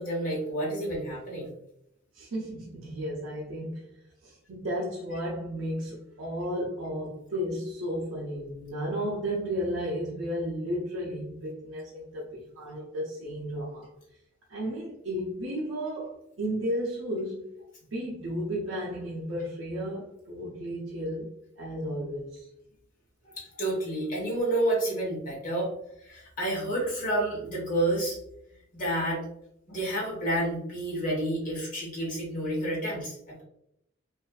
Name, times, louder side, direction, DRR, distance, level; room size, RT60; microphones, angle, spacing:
voice 1, 0.0-1.5 23.2-25.7 26.0-28.2 28.7-29.2 29.7-33.4, right 1 dB, 45° left, -4 dB, 1.1 m, -29 dB
voice 2, 2.1-3.9 4.2-13.9 14.5-17.4 17.9-21.3 21.6-22.5, equal, 80° right, -5 dB, 0.5 m, -33 dB
2.5 x 2.4 x 2.2 m, 0.78 s
head